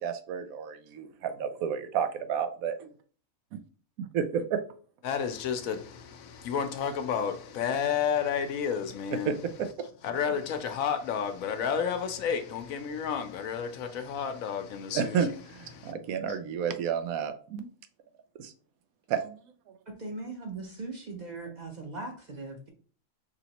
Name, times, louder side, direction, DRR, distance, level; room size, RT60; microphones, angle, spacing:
voice 1, 0.0-2.9 3.5-3.6 4.0-4.6 9.2-9.7 14.9-17.7 18.4-18.5 19.1-19.4, right 7 dB, 85° right, 1.0 m, -31 dB
voice 2, 5.0-9.4 10.0-15.2 15.7-15.9, left 7 dB, 75° left, 1.0 m, -31 dB
voice 3, 20.0-22.7, right 3 dB, 40° right, 0.7 m, -39 dB
4.9 x 3.0 x 2.9 m
omnidirectional pair, 1.5 m